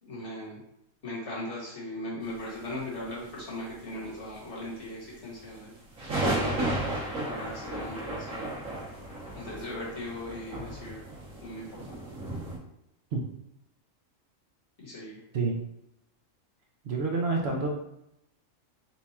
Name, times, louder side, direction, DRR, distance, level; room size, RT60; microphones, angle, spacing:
voice 1, 0.0-0.6 1.0-5.7 7.2-8.5 9.3-11.0 11.4-11.8 14.8-15.2, left 1 dB, 60° left, -6 dB, 1.8 m, -38 dB
sound 1, 2.8-4.0 4.3-4.7 5.0-5.1 5.4-12.6, right 1 dB, 85° right, 1.5 m, -34 dB
voice 2, 16.8-17.7, right 3 dB, 60° right, 0 dB, 0.8 m, -28 dB
4.4 x 2.3 x 4.2 m, 0.82 s
omnidirectional pair, 1.4 m